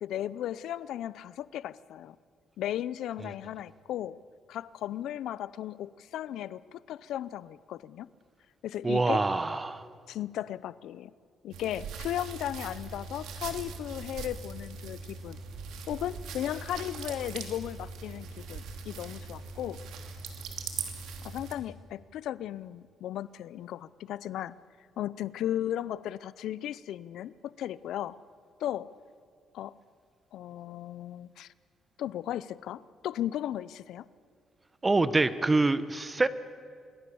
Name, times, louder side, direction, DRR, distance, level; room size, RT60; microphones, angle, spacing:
voice 1, 0.0-2.2 2.6-4.2 4.5-8.1 8.6-9.2 10.1-11.1 11.4-15.4 15.9-19.8 21.2-24.5 25.0-28.2 28.6-28.9 29.5-29.7 30.3-31.5 32.0-34.1, left 12 dB, 80° left, 18 dB, 0.6 m, -36 dB
voice 2, 8.8-9.9 34.8-36.3, right 3 dB, 20° right, 14 dB, 1.2 m, -25 dB
sound 1, 11.5-21.5, right 5 dB, 85° right, 2.7 m, -41 dB
26.0 x 22.5 x 7.0 m, 2.3 s
cardioid pair, 90°, 0 cm